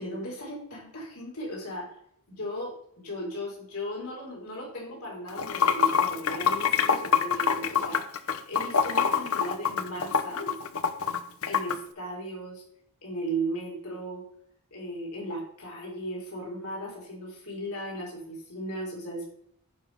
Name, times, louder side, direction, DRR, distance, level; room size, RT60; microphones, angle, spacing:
voice 1, 0.0-1.9 2.3-10.6 11.4-12.6 13.0-14.2 14.7-19.3, right 1 dB, 85° left, -3 dB, 4.5 m, -36 dB
Water / Sink (filling or washing), 5.3-11.8, left 7 dB, 70° left, 0.8 m, -25 dB
15.5 x 5.6 x 3.5 m, 0.70 s
head